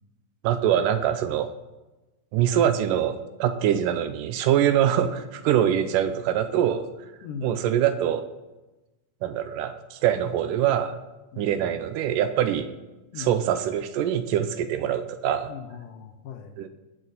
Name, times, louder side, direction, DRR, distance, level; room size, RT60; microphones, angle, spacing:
voice 1, 0.4-1.5 2.3-6.8 7.4-8.3 9.2-11.0 11.4-12.7 13.2-15.5 16.6-16.7, right 10 dB, 90° right, 9 dB, 2.4 m, -24 dB
voice 2, 7.2-7.7 11.3-11.8 13.1-13.5 15.5-16.6, left 7 dB, 90° left, 4 dB, 2.7 m, -39 dB
19.5 x 6.8 x 4.2 m, 1.1 s
omnidirectional pair, 3.7 m